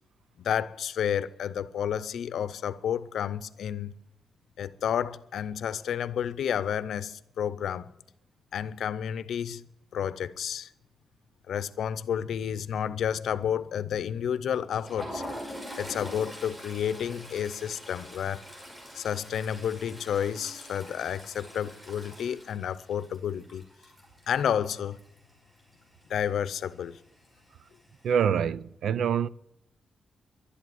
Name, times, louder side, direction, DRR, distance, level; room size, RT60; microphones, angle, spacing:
voice 1, 0.4-3.9 4.6-7.9 8.5-9.6 9.9-10.7 11.5-15.2 15.8-18.4 18.9-23.6 24.3-25.0 26.1-27.0, left 9 dB, 85° left, 0.6 m, -31 dB
Toilet flush, 14.5-25.3 25.6-25.8 26.1-26.3 27.2-27.8, equal, 15° right, 6.9 m, -44 dB
voice 2, 28.0-29.3, right 8 dB, 85° right, 0.4 m, -25 dB
11.5 x 11.0 x 9.3 m
wide cardioid pair, 145°, 0 cm